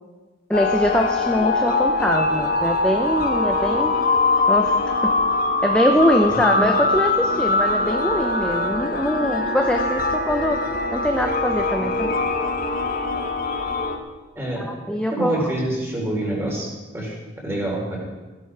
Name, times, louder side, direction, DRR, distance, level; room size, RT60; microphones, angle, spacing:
sound 1, 0.5-14.0, left 3 dB, 45° left, 1.4 m, -22 dB
voice 1, 0.5-4.1 4.5-4.8 5.6-10.6 10.9-12.1 14.6-15.5, equal, 5° left, 3 dB, 0.7 m, -22 dB
voice 2, 14.4-14.7 15.1-16.7 16.9-18.0, right 1 dB, 15° right, -2 dB, 4.0 m, -26 dB
15.5 x 12.0 x 4.9 m, 1.2 s
head